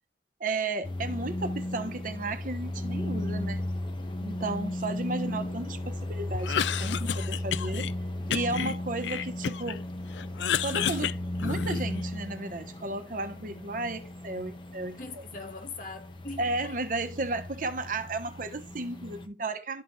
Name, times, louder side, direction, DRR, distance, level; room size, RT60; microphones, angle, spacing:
voice 1, 0.4-3.6 4.2-7.9 8.3-9.8 10.6-15.2 16.4-19.8, right 2 dB, 50° right, 0.9 m, -34 dB
sound 1, 0.8-19.3, left 1 dB, 25° left, 0.8 m, -35 dB
voice 2, 4.7-5.7 15.0-16.8, left 3 dB, 50° left, 1.1 m, -43 dB
Cough, 6.3-7.9 8.3-9.8 10.1-12.0, left 8 dB, 80° left, 0.4 m, -31 dB
12.5 x 4.2 x 3.2 m
head